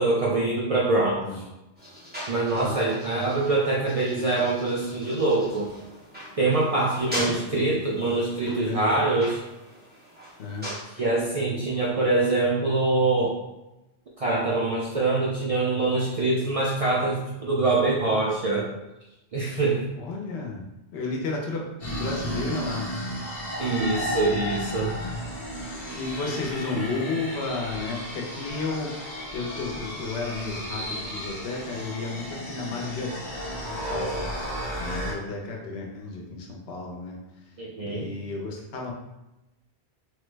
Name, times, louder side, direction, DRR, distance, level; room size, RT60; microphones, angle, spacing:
voice 1, 0.0-1.4 2.3-5.7 6.4-9.4 10.9-13.4 14.2-18.7 19.3-19.8 23.6-24.9 25.9-26.0 26.7-26.8 37.6-38.1, right 2 dB, 55° right, -5 dB, 0.4 m, -24 dB
sound 1, 1.8-10.8, equal, 10° right, 0.8 m, -40 dB
voice 2, 7.1-7.8 8.6-9.0 10.4-10.7 20.0-20.6 20.9-22.9 26.0-33.1 33.7-34.3 34.6-37.2 37.8-38.9, left 3 dB, 70° left, 0 dB, 0.9 m, -33 dB
sound 2, 21.8-35.1, equal, 35° left, 0.8 m, -33 dB
3.2 x 2.0 x 3.2 m, 0.97 s
omnidirectional pair, 1.1 m